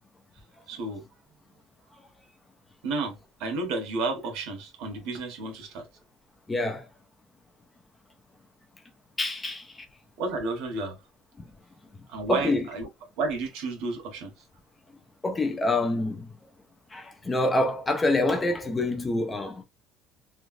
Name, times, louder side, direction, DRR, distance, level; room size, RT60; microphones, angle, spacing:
voice 1, 0.7-1.0 2.8-5.8 10.2-11.0 12.1-12.9 13.2-14.3, right 3 dB, 85° right, 1.2 m, -31 dB
voice 2, 6.5-6.9 9.2-9.7 12.3-12.7 15.2-16.3 16.9-19.6, left 2 dB, 15° left, 0.5 m, -26 dB
3.2 x 2.4 x 2.5 m
cardioid pair, 175°, 0 cm